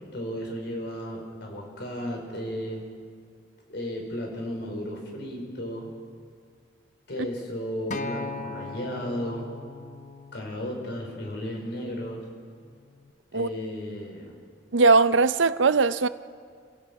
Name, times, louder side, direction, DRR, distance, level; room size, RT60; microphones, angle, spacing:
voice 1, 0.1-2.8 3.7-5.9 7.1-9.5 10.3-12.2 13.3-14.4, equal, 65° left, 4.8 m, -34 dB
Acoustic guitar, 7.9-12.2 13.0-13.1, left 3 dB, 45° left, 0.9 m, -39 dB
voice 2, 14.7-16.1, right 4 dB, 85° right, 0.6 m, -20 dB
29.5 x 17.0 x 5.3 m
head